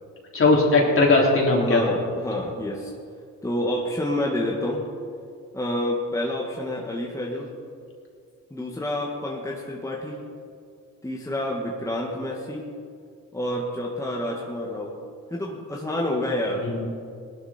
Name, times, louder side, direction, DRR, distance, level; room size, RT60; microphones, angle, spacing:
voice 1, 0.3-1.8 16.6-16.9, left 2 dB, 45° left, -2 dB, 3.8 m, -19 dB
voice 2, 1.6-2.9 3.4-4.9 5.5-7.5 8.5-10.2 11.0-12.6 13.3-14.9 15.3-16.7, left 1 dB, 10° left, -3 dB, 1.9 m, -28 dB
18.5 x 12.0 x 4.5 m, 2.3 s
cardioid pair, 90°, 30 cm